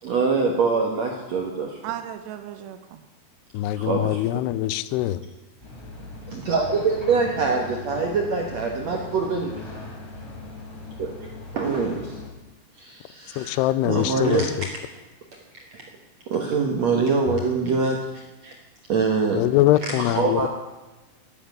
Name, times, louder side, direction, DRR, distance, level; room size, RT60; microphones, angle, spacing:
voice 1, 0.0-1.8 3.8-4.2 6.3-9.5 11.0-11.3 11.5-12.1 12.8-14.5 16.3-18.5 18.9-19.4 20.0-20.5, right 4 dB, 60° right, 1 dB, 1.9 m, -24 dB
voice 2, 1.8-3.0, right 11 dB, 85° right, 8 dB, 3.1 m, -35 dB
voice 3, 3.5-5.2 13.4-14.7 17.3-17.4 19.4-20.5, left 14 dB, 85° left, 16 dB, 2.6 m, -23 dB
sound 1, 5.6-12.3, left 2 dB, 5° left, 3.4 m, -39 dB
13.0 x 10.0 x 9.4 m, 1.1 s
omnidirectional pair, 4.8 m